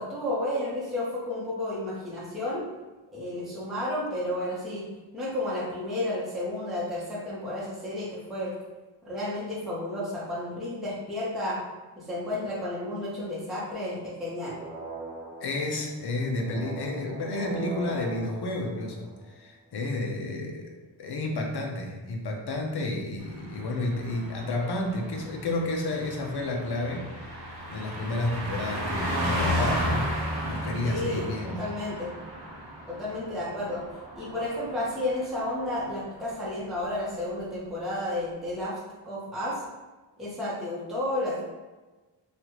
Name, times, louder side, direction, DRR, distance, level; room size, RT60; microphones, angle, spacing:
voice 1, 0.0-2.6 3.1-4.9 5.1-8.5 9.0-11.6 12.0-14.6 30.8-31.3 31.6-32.1 32.9-33.8 34.2-38.8 39.0-39.6 40.2-41.4, left 1 dB, ahead, -9 dB, 0.9 m, -32 dB
sound 1, 14.3-19.6 23.9-25.6, right 4 dB, 20° right, 0.4 m, -42 dB
voice 2, 15.4-20.7 21.0-27.1 27.7-30.1 30.4-31.7, left 2 dB, 60° left, 1 dB, 0.6 m, -31 dB
Car passing by, 23.3-35.2 35.5-35.8, equal, 55° right, 0.9 m, -33 dB
3.2 x 2.4 x 2.9 m, 1.2 s
wide cardioid pair, 95°, 45 cm